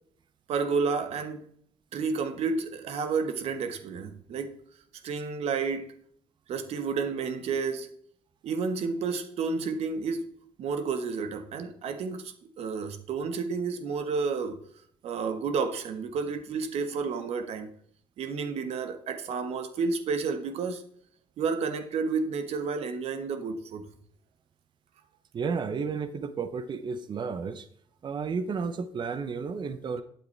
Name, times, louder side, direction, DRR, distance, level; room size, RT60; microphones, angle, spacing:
voice 1, 0.5-1.5 1.9-4.6 5.0-5.9 6.5-7.9 8.4-14.6 15.0-17.7 18.2-20.8 21.4-23.8, right 5 dB, 65° right, 1.2 m, -31 dB
voice 2, 25.3-27.7 28.0-30.0, right 5 dB, 40° right, 0.8 m, -32 dB
9.1 x 7.7 x 3.3 m
supercardioid pair, 65°, 12 cm